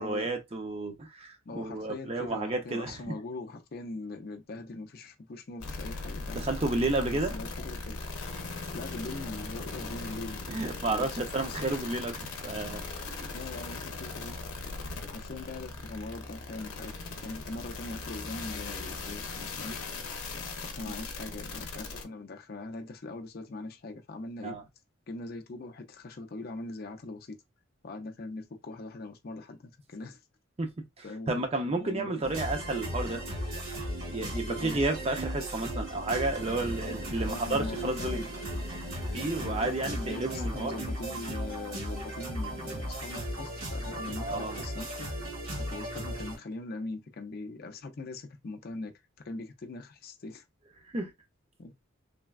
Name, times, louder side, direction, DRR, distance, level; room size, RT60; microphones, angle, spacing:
voice 1, 0.0-3.2 6.3-7.4 10.5-12.8 13.2-13.4 20.8-20.9 24.4-24.6 30.6-33.2 34.1-38.2 39.1-40.8 44.2-44.6 50.9-51.1, right 2 dB, 30° right, 0.5 m, -32 dB
voice 2, 1.5-6.4 7.1-8.0 8.7-11.8 13.3-14.4 15.1-19.8 20.6-24.6 25.1-27.4 27.8-30.2 31.0-32.2 34.6-34.8 37.2-38.3 39.4-45.1 45.6-48.9 49.2-50.4 51.6-51.7, left 2 dB, 45° left, 0.5 m, -41 dB
sound 1, 5.6-22.0, left 3 dB, 85° left, 0.6 m, -39 dB
sound 2, 32.2-46.4, equal, 80° right, 1.8 m, -36 dB
sound 3, 36.3-46.4, right 1 dB, 65° right, 0.7 m, -49 dB
3.3 x 2.2 x 2.3 m
head